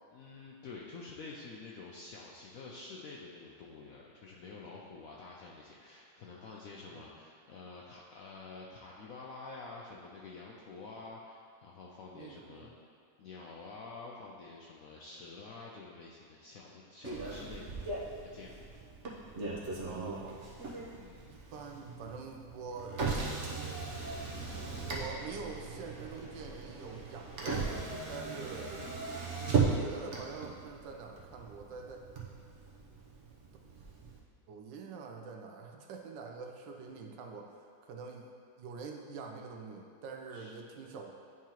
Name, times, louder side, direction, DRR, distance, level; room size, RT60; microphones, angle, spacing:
voice 1, 0.1-12.7 13.2-18.0 18.2-18.7 20.9-21.4 40.3-40.6, left 3 dB, 75° left, -3 dB, 0.8 m, -48 dB
voice 2, 12.2-12.7 19.8-20.5 21.2-23.0 24.8-28.8 29.5-32.1 34.5-37.6 37.8-38.3 38.6-41.1, right 4 dB, 80° right, 2 dB, 1.3 m, -45 dB
Motor vehicle (road), 17.0-34.2, right 4 dB, 50° right, 1.0 m, -38 dB
10.5 x 3.7 x 2.9 m, 2.3 s
omnidirectional pair, 2.0 m